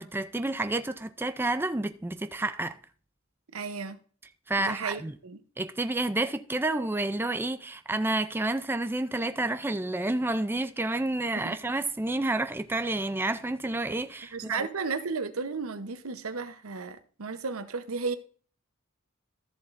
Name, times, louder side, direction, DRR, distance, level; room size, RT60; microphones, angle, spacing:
voice 1, 0.0-2.8 4.5-5.1 5.6-14.7, right 2 dB, 10° right, 0.4 m, -30 dB
voice 2, 3.5-4.0 4.6-5.4 11.4-11.6 14.3-18.2, right 4 dB, 85° right, 0.9 m, -34 dB
13.5 x 7.2 x 2.6 m
head